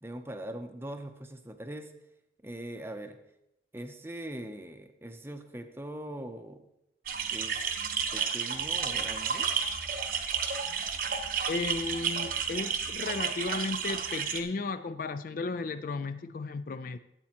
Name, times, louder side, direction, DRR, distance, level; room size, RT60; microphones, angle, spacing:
voice 1, 0.0-1.9 2.4-3.2 3.7-6.6 7.3-9.5, right 1 dB, 10° right, 7 dB, 0.6 m, -41 dB
sound 1, 7.1-14.4, right 6 dB, 50° right, 0.9 m, -32 dB
voice 2, 11.5-17.0, left 3 dB, 45° left, 12 dB, 0.3 m, -34 dB
13.0 x 8.3 x 2.9 m, 0.84 s
head